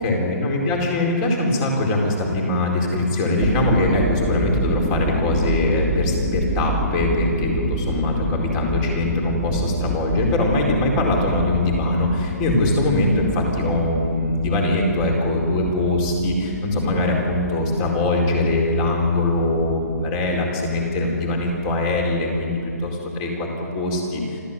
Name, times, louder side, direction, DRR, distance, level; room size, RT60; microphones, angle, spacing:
voice 1, 0.0-24.4, left 2 dB, 25° left, 0 dB, 4.5 m, -22 dB
sound 1, 3.3-22.9, right 1 dB, 5° left, 2.7 m, -29 dB
26.0 x 14.5 x 9.2 m, 2.6 s
hypercardioid pair, 160°, 9 cm